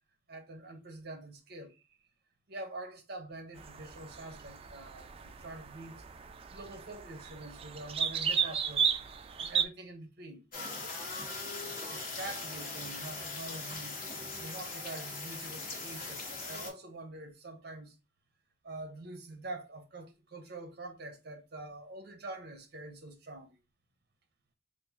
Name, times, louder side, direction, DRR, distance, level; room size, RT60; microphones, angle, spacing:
voice 1, 0.3-1.9 2.5-6.0 6.5-8.9 9.4-10.4 11.9-14.0 14.4-18.0 18.6-23.6, right 2 dB, 60° right, 0.8 m, -45 dB
sound 1, 3.6-9.6, right 7 dB, 30° right, 0.3 m, -34 dB
sound 2, 10.5-16.7, left 3 dB, 50° left, 1.1 m, -40 dB
2.9 x 2.5 x 3.6 m
head